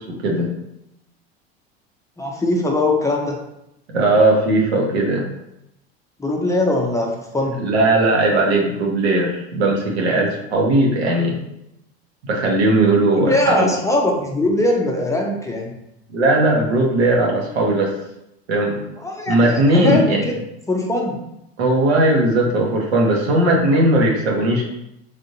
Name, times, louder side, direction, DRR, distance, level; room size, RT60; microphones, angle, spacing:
voice 1, 0.1-0.5 3.9-5.3 7.6-11.4 12.2-13.7 16.1-17.9 18.5-18.8 19.3-20.3 21.6-24.6, right 2 dB, 80° right, -1 dB, 0.9 m, -18 dB
voice 2, 2.2-3.4 6.2-7.6 13.2-15.7 19.0-20.3 20.7-21.2, left 1 dB, 10° left, 0 dB, 0.5 m, -21 dB
3.4 x 2.6 x 2.7 m, 0.82 s
hypercardioid pair, 85°, 32 cm